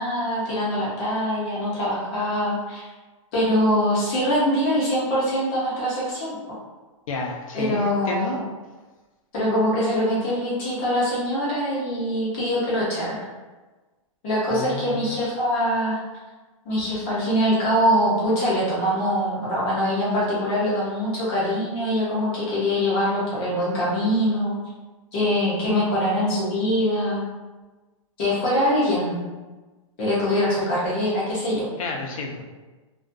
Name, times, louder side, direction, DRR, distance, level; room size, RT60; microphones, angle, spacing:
voice 1, 0.0-2.9 3.3-6.6 7.5-8.4 9.3-13.2 14.2-16.0 16.6-24.5 25.1-27.3 28.2-29.2 30.0-31.7, equal, 15° left, -7 dB, 0.4 m, -23 dB
voice 2, 7.1-8.4 14.5-15.2 31.8-32.4, left 3 dB, 85° left, 0 dB, 0.5 m, -30 dB
2.4 x 2.2 x 2.4 m, 1.2 s
hypercardioid pair, 180°, 17 cm